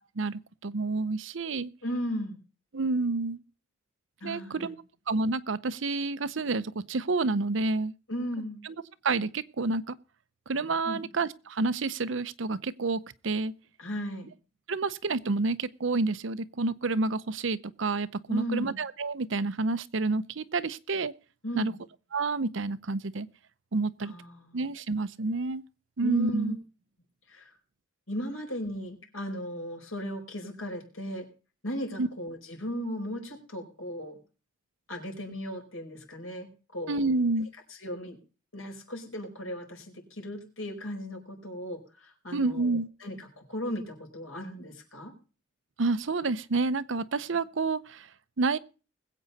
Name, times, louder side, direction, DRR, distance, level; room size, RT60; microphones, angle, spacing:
voice 1, 0.2-1.7 2.7-3.4 4.2-4.8 5.1-7.9 8.6-8.7 9.0-10.0 10.5-13.5 14.7-21.1 21.6-21.7 22.1-23.3 23.7-24.1 24.5-25.6 26.0-26.6 32.0-32.1 36.9-37.5 42.3-42.9 45.8-48.1 48.4-48.6, right 3 dB, 65° right, 0.7 m, -29 dB
voice 2, 1.8-2.4 4.2-4.8 8.1-8.6 10.8-11.0 13.8-14.3 18.3-18.8 21.4-21.7 24.0-24.6 26.0-26.5 27.3-27.5 28.1-31.3 31.6-34.1 34.9-37.1 37.8-38.2 38.5-45.1, equal, 90° left, 4.7 m, -36 dB
21.0 x 8.4 x 4.1 m
head